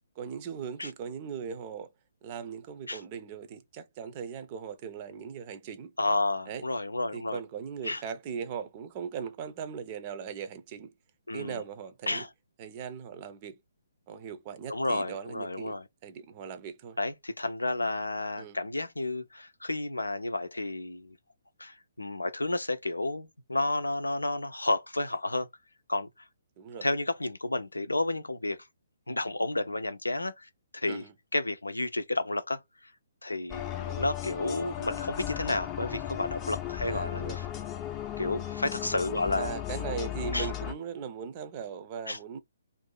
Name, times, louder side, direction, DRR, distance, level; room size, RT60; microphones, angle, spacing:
voice 1, 0.2-1.9 2.2-5.9 6.5-6.6 7.1-10.9 11.3-12.2 12.6-13.6 14.1-15.8 16.0-17.0 18.4-18.6 26.6-26.9 30.9-31.1 33.8-34.1 36.8-37.4 39.3-42.4, right 7 dB, 30° right, 0.6 m, -39 dB
voice 2, 6.0-7.4 7.8-8.0 11.3-11.6 12.1-12.3 14.7-15.9 17.0-21.2 21.6-25.5 25.9-26.1 26.8-28.6 29.1-31.0 31.3-32.9 33.2-37.4 38.2-39.6 40.3-40.5 42.1-42.2, left 2 dB, 80° left, 0.5 m, -31 dB
sound 1, 33.5-40.7, left 12 dB, 20° left, 0.6 m, -36 dB
2.6 x 2.5 x 3.8 m
figure-of-eight pair, 130°, 0 cm